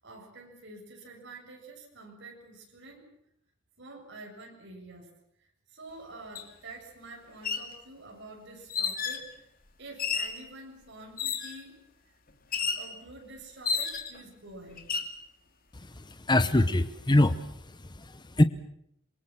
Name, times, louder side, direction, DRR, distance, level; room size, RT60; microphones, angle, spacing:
voice 1, 0.0-3.1 3.8-5.1 5.7-9.3 9.8-11.8 12.6-14.9, right 2 dB, 55° right, 1 dB, 7.5 m, -47 dB
sound 1, 6.3-6.5 7.3-7.7 8.7-9.3 10.0-10.4 11.2-11.6 12.5-12.9 13.6-14.2 14.8-15.1, left 5 dB, 45° left, 2.6 m, -31 dB
voice 2, 16.0-17.5 18.0-18.4, left 1 dB, 20° left, 11 dB, 0.9 m, -24 dB
27.0 x 23.0 x 7.5 m, 0.73 s
head